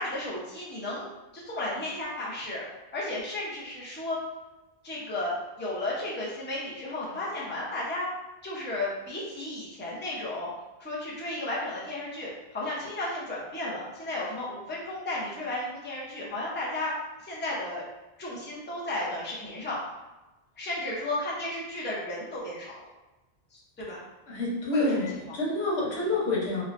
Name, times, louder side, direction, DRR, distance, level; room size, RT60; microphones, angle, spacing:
voice 1, 0.0-2.6 2.9-4.2 4.8-8.1 8.4-10.5 10.8-16.9 17.2-17.8 18.2-19.8 20.6-22.9 23.5-24.0 24.7-25.0 25.3-25.4, left 1 dB, 15° left, -6 dB, 0.5 m, -34 dB
voice 2, 24.3-26.6, left 2 dB, 80° left, -5 dB, 1.1 m, -28 dB
3.1 x 2.2 x 2.4 m, 1.0 s
omnidirectional pair, 1.0 m